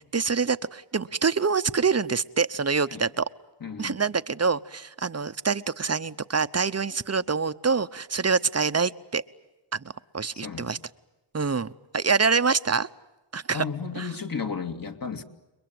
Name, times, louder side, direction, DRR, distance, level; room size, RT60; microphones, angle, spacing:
voice 1, 0.0-3.3 3.8-9.2 9.7-9.8 10.1-10.8 11.3-12.9 13.3-13.6 14.0-14.1, right 5 dB, 30° right, 13 dB, 0.9 m, -25 dB
voice 2, 3.6-4.0 10.3-10.7 13.5-15.2, left 5 dB, 40° left, 6 dB, 2.6 m, -33 dB
30.0 x 22.5 x 7.9 m, 1.1 s
cardioid pair, 65°, 50 cm